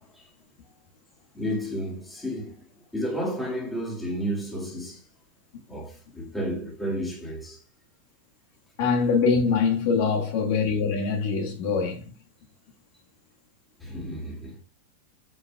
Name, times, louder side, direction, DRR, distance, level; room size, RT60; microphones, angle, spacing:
voice 1, 1.3-2.7 2.9-5.0 5.7-7.6 13.8-14.6, equal, 5° left, 1.9 m, -32 dB
voice 2, 8.8-12.0, left 5 dB, 50° left, 1.5 m, -23 dB
14.5 x 5.2 x 2.3 m
supercardioid pair, 175°, 0 cm